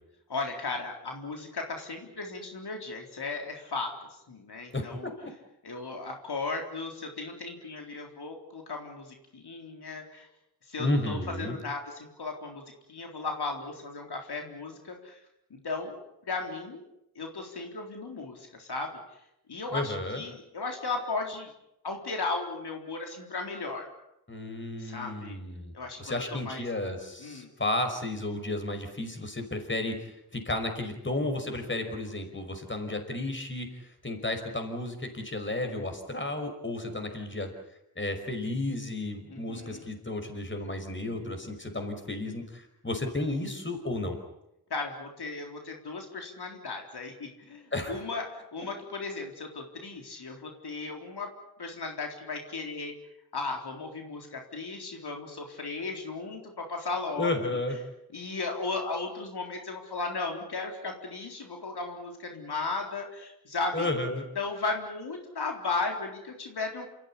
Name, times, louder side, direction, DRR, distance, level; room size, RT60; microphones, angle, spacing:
voice 1, 0.3-3.9 4.3-5.1 5.6-10.3 10.7-12.6 12.9-15.2 15.5-16.0 16.2-16.8 17.2-18.9 19.5-21.5 21.8-23.9 24.8-25.4 25.7-26.6 27.2-27.5 39.3-39.9 44.7-51.3 51.6-52.9 53.3-57.6 58.1-63.9 64.4-66.9, left 3 dB, 85° left, 2 dB, 4.0 m, -36 dB
voice 2, 4.7-5.3 10.8-11.6 19.7-20.2 24.3-25.7 26.0-37.5 38.0-44.2 47.7-48.0 57.2-57.8 63.7-64.3, left 2 dB, 30° left, 6 dB, 5.4 m, -33 dB
28.5 x 15.0 x 10.0 m, 0.84 s
wide cardioid pair, 85°, 38 cm